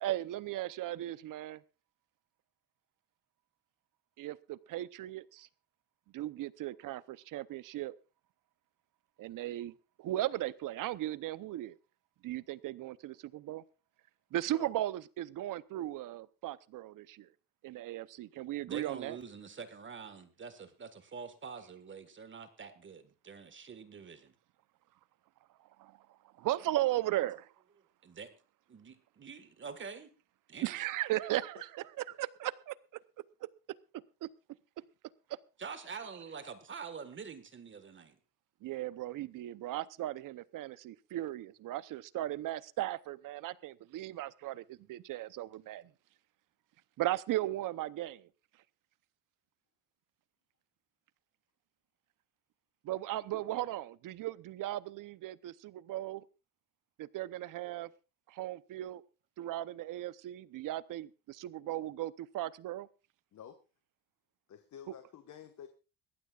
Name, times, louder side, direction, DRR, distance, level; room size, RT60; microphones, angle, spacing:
voice 1, 0.0-1.6 4.2-5.5 6.1-7.9 9.2-9.7 10.0-11.8 12.2-13.6 14.3-17.3 17.6-19.2 25.8-25.9 26.4-27.5 30.6-33.0 34.2-34.3 38.6-45.9 47.0-48.3 52.8-56.2 57.0-57.9 58.3-59.0 59.4-62.9, right 14 dB, 60° right, 0.8 m, -37 dB
voice 2, 18.7-24.3 28.0-28.3 28.7-30.1 30.5-30.8 35.6-38.2, right 5 dB, 30° right, 1.6 m, -46 dB
voice 3, 64.5-65.7, left 9 dB, 50° left, 1.4 m, -50 dB
22.0 x 15.0 x 2.4 m
cardioid pair, 110°, 37 cm